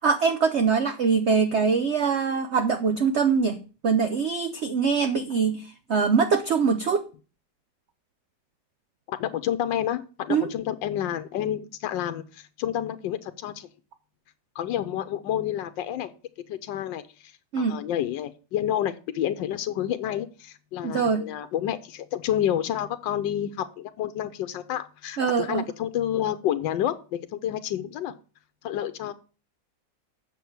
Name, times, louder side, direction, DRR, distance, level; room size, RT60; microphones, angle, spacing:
voice 1, 0.0-7.0 10.3-10.5 17.5-17.8 20.8-21.3 25.2-25.6, right 5 dB, 65° right, 8 dB, 0.7 m, -23 dB
voice 2, 9.1-13.7 14.5-16.1 16.5-28.1 28.6-29.1, left 11 dB, 85° left, 10 dB, 1.4 m, -29 dB
8.4 x 6.4 x 4.6 m, 0.35 s
omnidirectional pair, 2.0 m